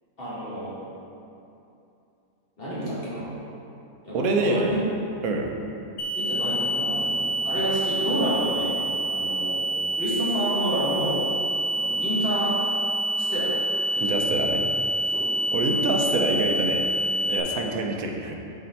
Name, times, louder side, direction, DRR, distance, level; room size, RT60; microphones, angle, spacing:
voice 1, 0.2-0.8 2.6-3.3 4.0-4.8 6.2-9.6 9.9-11.2 11.7-12.5 13.1-13.6 13.9-14.1 15.1-15.3, equal, 40° left, -9 dB, 1.7 m, -29 dB
voice 2, 4.1-4.7 5.2-5.5 14.0-14.7 15.5-16.9 17.3-18.4, right 2 dB, 80° right, 2 dB, 1.1 m, -26 dB
sound 1, 6.0-17.4, right 1 dB, 65° left, 0.4 m, -27 dB
6.3 x 4.3 x 4.1 m, 2.8 s
omnidirectional pair, 1.5 m